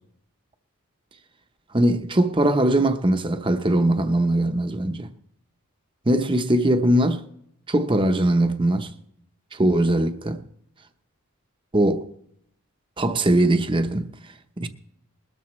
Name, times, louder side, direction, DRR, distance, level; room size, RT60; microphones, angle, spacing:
voice 1, 1.7-5.1 6.1-7.2 7.7-8.9 9.5-10.4 11.7-12.1 13.0-14.1 14.6-14.7, right 1 dB, 25° right, 0.8 m, -21 dB
21.0 x 13.0 x 3.2 m
head